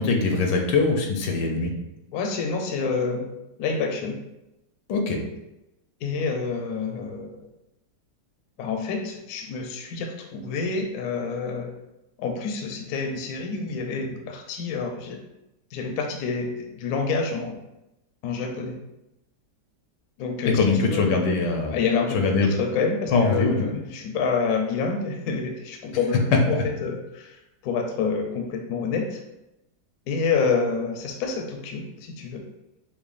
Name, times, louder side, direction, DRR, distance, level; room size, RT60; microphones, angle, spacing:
voice 1, 0.0-1.7 4.9-5.2 20.5-21.7 22.1-22.5 23.1-23.6, left 4 dB, 85° left, 2 dB, 1.3 m, -22 dB
voice 2, 2.1-3.3 3.6-4.2 6.0-7.5 8.6-11.7 12.2-15.2 15.7-17.6 18.2-18.8 20.2-21.4 21.7-26.2 26.5-29.2 30.1-32.4, left 5 dB, 70° left, 3 dB, 0.9 m, -28 dB
5.8 x 2.1 x 2.4 m, 0.90 s
omnidirectional pair, 1.8 m